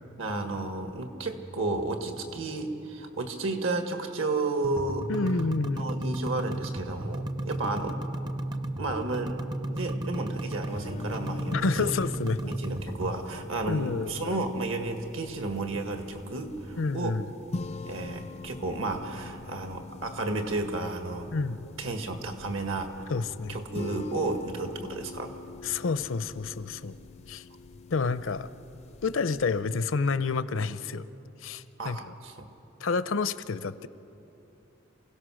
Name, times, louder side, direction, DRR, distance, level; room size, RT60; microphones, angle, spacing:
voice 1, 0.2-5.1 5.7-8.0 8.8-9.4 9.7-11.9 12.5-17.2 17.9-21.3 21.8-23.0 23.5-25.3 31.8-32.5, right 2 dB, 75° right, 5 dB, 1.9 m, -32 dB
sound 1, 4.6-13.1, right 1 dB, 20° right, 0.5 m, -34 dB
voice 2, 5.1-5.9 11.5-12.5 13.7-14.4 16.8-17.2 21.3-21.7 23.1-23.6 25.6-27.0 27.3-27.4 27.9-28.5 29.0-31.1 31.4-32.1 32.8-33.9, left 4 dB, 75° left, 14 dB, 0.6 m, -29 dB
sound 2, 10.7-29.6, left 3 dB, 30° left, 0.4 m, -44 dB
28.0 x 16.5 x 6.4 m, 2.9 s
head